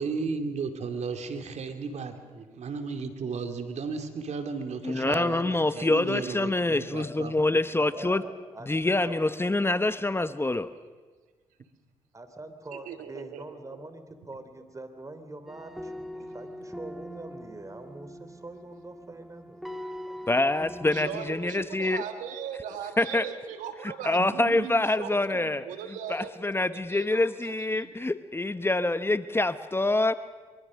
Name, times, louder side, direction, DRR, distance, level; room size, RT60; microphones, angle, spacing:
voice 1, 0.0-7.6, right 4 dB, 60° right, 7 dB, 2.6 m, -34 dB
voice 2, 4.8-8.2 8.7-10.7 20.3-22.0 23.0-23.3 24.0-25.7 26.1-30.1, left 2 dB, 20° left, 13 dB, 1.0 m, -26 dB
voice 3, 7.9-9.3 12.1-19.6 20.1-20.4, right 2 dB, 25° right, 9 dB, 3.3 m, -44 dB
voice 4, 12.7-13.4 20.9-26.3 26.9-27.9, right 8 dB, 85° right, 8 dB, 1.5 m, -39 dB
sound 1, 15.5-22.1, equal, ahead, 1.7 m, -42 dB
23.5 x 23.5 x 6.4 m, 1.4 s
supercardioid pair, 55°, 13 cm